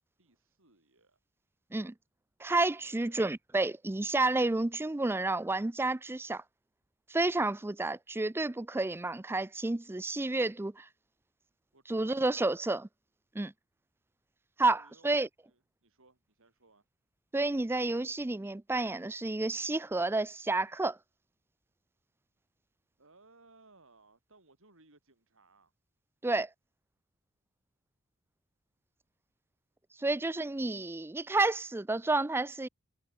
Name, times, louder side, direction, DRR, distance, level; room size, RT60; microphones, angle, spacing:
voice 1, 0.2-1.2 2.7-3.3 11.7-12.2 14.7-16.8 23.0-25.7, right 3 dB, 60° right, 4.3 m, -63 dB
voice 2, 2.4-6.4 7.1-10.9 11.9-12.9 13.4-13.5 14.6-15.3 17.3-21.0 26.2-26.5 30.0-32.7, right 2 dB, 10° right, 0.4 m, -30 dB
head